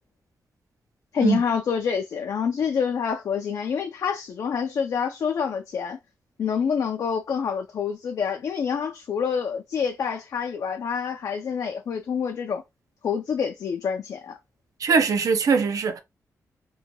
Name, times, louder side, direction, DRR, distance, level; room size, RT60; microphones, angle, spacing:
voice 1, 1.1-6.0 6.4-12.6 13.0-14.4, left 6 dB, 65° left, 0.4 m, -27 dB
voice 2, 14.8-16.0, right 5 dB, 65° right, 0.5 m, -21 dB
2.7 x 2.2 x 2.6 m
wide cardioid pair, 130°, 6 cm